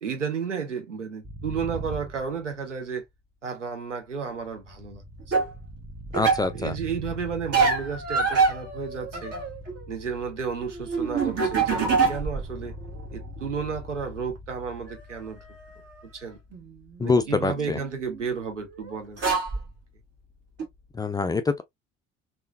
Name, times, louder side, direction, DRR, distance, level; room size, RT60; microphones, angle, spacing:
voice 1, 0.0-3.0 3.4-5.0 6.5-9.3 9.9-12.7 13.1-15.4 16.1-16.4 17.0-19.2 19.5-19.6, right 6 dB, 85° right, 0.8 m, -32 dB
sound 1, 1.2-3.0 4.0-20.9, equal, 20° right, 0.9 m, -43 dB
sound 2, 5.3-5.5 6.1-6.5 7.5-9.8 10.1-12.5 12.8-13.7 14.9-15.0 16.5-18.2 18.9-19.0 19.2-19.6 20.6-20.7, right 5 dB, 40° right, 1.7 m, -26 dB
voice 2, 6.1-6.7 17.0-17.8 20.9-21.6, left 3 dB, 10° left, 0.3 m, -25 dB
3.7 x 2.6 x 2.3 m
figure-of-eight pair, 55°, 36 cm